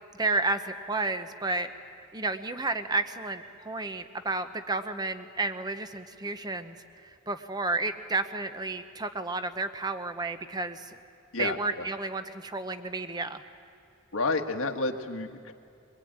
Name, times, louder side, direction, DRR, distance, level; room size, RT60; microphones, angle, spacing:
voice 1, 0.1-1.7 2.1-6.8 7.0-10.9 11.4-13.4, right 3 dB, 20° right, 9 dB, 0.9 m, -31 dB
voice 2, 11.3-11.8 14.1-15.5, left 3 dB, 80° left, 4 dB, 1.5 m, -30 dB
23.5 x 22.5 x 8.8 m, 2.6 s
head